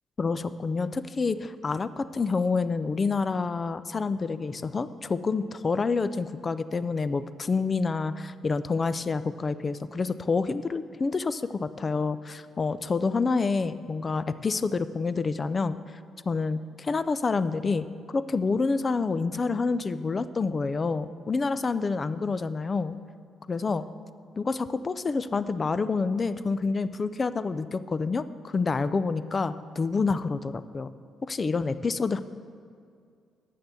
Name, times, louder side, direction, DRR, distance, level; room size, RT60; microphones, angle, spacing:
voice 1, 0.2-15.8 16.3-17.9 18.1-23.0 23.5-23.9 24.4-30.9 31.3-32.2, left 4 dB, 35° left, 14 dB, 0.4 m, -28 dB
9.1 x 6.6 x 7.0 m, 2.3 s
cardioid pair, 90°, 0 cm